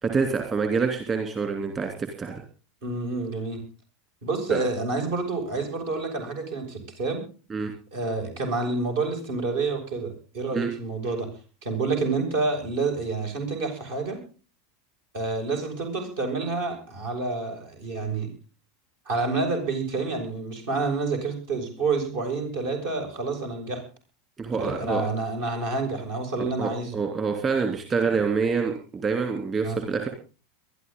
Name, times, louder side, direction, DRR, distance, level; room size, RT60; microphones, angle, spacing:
voice 1, 0.0-2.4 4.5-4.6 7.5-7.7 10.5-10.7 24.4-25.0 26.6-30.1, right 5 dB, 25° right, 4 dB, 3.2 m, -26 dB
voice 2, 2.8-3.6 4.2-7.2 7.9-11.3 11.6-14.2 15.1-18.3 19.0-23.8 24.6-27.0 29.6-29.8, right 3 dB, 65° right, 3 dB, 6.6 m, -28 dB
22.5 x 12.0 x 3.9 m, 0.35 s
figure-of-eight pair, 85°, 0 cm